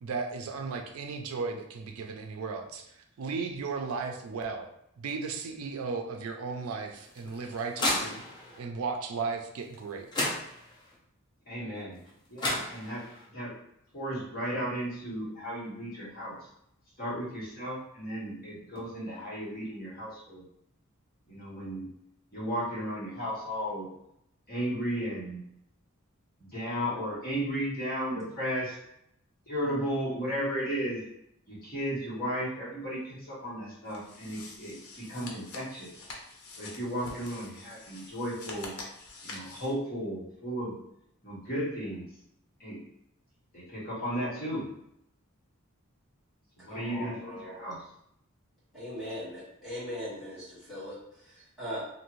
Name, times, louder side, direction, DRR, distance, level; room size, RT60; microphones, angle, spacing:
voice 1, 0.0-4.7 5.0-8.2 8.6-10.1, right 4 dB, 75° right, 4 dB, 0.4 m, -35 dB
sound 1, 7.0-8.6 9.7-9.8 10.1-10.9 12.1-12.2 12.4-13.2, left 1 dB, 20° left, 0.6 m, -33 dB
voice 2, 11.5-12.0 12.3-13.5 13.9-16.4 17.0-20.5 21.3-21.9 22.3-23.9 24.5-25.4 26.4-28.8 29.5-31.0 31.5-36.0 36.6-38.8 39.2-40.7 41.2-42.1 42.6-42.8 43.5-44.6 46.6-47.8, equal, 45° left, -9 dB, 1.4 m, -34 dB
sound 2, 33.9-39.7, left 3 dB, 85° left, 0.6 m, -46 dB
voice 3, 46.7-47.6 48.7-51.8, equal, ahead, -11 dB, 1.3 m, -40 dB
2.6 x 2.5 x 3.0 m, 0.77 s
head